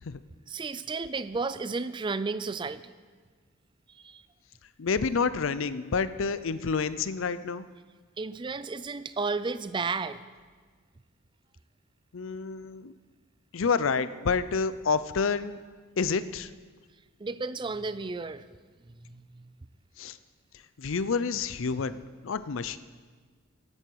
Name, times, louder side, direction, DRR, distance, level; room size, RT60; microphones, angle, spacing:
voice 1, 0.5-2.9 3.9-4.2 8.2-10.2 17.2-18.5 19.1-19.4, right 4 dB, 25° right, 14 dB, 0.4 m, -33 dB
voice 2, 4.8-7.6 12.1-12.9 13.5-15.6 16.0-16.5 20.0-20.2 20.8-22.8, left 5 dB, 70° left, 14 dB, 0.5 m, -29 dB
14.5 x 11.0 x 4.7 m, 1.5 s
head